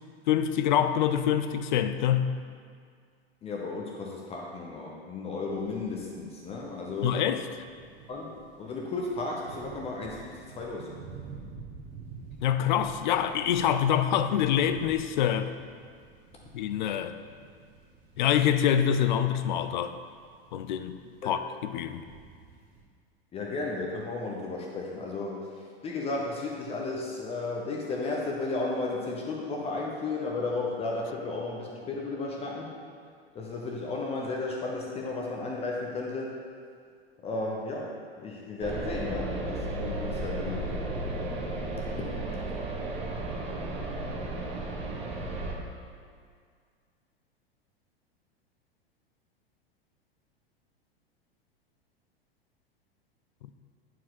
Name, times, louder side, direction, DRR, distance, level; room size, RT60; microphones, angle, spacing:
voice 1, 0.3-2.3 7.0-7.4 12.4-15.5 16.5-17.2 18.2-19.9 20.5-21.0 21.2-22.0, left 9 dB, 50° left, 0.4 m, -25 dB
voice 2, 3.4-7.2 8.1-10.9 21.2-21.3 23.3-25.4 25.8-32.8 33.3-36.4 37.2-40.7, left 3 dB, 20° left, 0.8 m, -34 dB
sound 1, 5.4-22.8, right 5 dB, 35° right, 1.4 m, -50 dB
sound 2, 38.6-45.5, right 2 dB, 20° right, 0.9 m, -34 dB
9.1 x 4.6 x 4.1 m
figure-of-eight pair, 90°, 31 cm